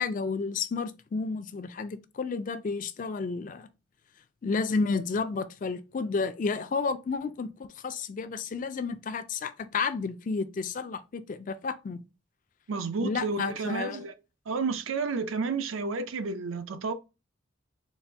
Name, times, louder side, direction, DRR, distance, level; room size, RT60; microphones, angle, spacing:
voice 1, 0.0-3.7 4.4-12.0 13.0-14.0, left 4 dB, 40° left, 0.3 m, -31 dB
voice 2, 12.7-14.1 14.5-16.9, right 4 dB, 85° right, 0.5 m, -31 dB
4.1 x 2.4 x 3.4 m
head